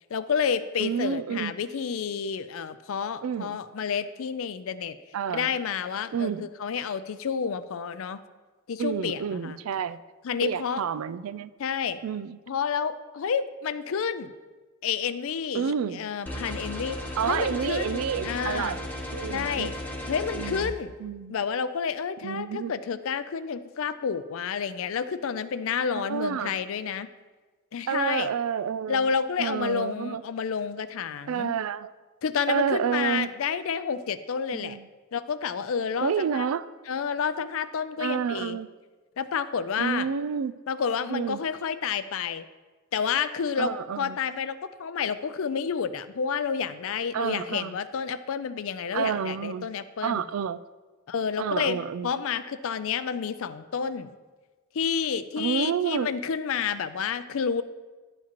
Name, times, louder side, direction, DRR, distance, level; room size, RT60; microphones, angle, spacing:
voice 1, 0.1-5.0 5.3-8.2 8.7-9.6 10.2-10.8 11.6-12.0 12.5-14.3 14.8-17.0 17.3-18.8 19.3-19.7 20.1-20.9 21.3-27.1 27.7-28.3 28.9-31.5 32.2-34.8 35.1-36.5 36.9-38.6 39.2-40.1 40.7-42.5 42.9-50.2 51.1-51.8 52.0-54.1 54.7-57.6, left 6 dB, 65° left, 13 dB, 0.4 m, -30 dB
voice 2, 0.8-1.5 3.2-3.6 5.1-5.6 6.1-6.5 8.8-10.0 10.4-11.5 12.0-12.4 15.5-16.0 17.2-18.9 19.1-19.8 20.3-20.7 21.0-21.4 22.2-22.7 25.9-26.5 27.9-29.1 29.4-30.2 31.3-31.9 32.5-33.3 34.5-34.9 36.0-36.7 38.0-38.7 39.8-40.5 41.1-41.4 43.6-44.2 47.1-47.7 48.9-49.7 50.0-50.6 51.4-52.2 55.4-56.1, right 7 dB, 70° right, 16 dB, 0.4 m, -29 dB
sound 1, 16.3-20.6, left 1 dB, 10° left, 1.0 m, -35 dB
11.5 x 7.3 x 3.0 m, 1.3 s
head